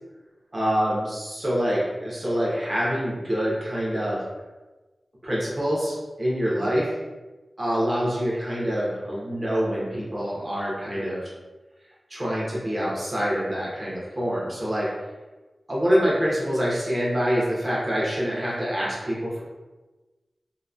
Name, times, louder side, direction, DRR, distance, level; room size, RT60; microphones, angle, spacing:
voice 1, 0.5-4.2 5.2-6.9 7.6-11.3 12.1-14.9 15.7-19.4, equal, 30° right, -6 dB, 1.0 m, -26 dB
2.9 x 2.2 x 2.5 m, 1.2 s
wide cardioid pair, 80°, 0 cm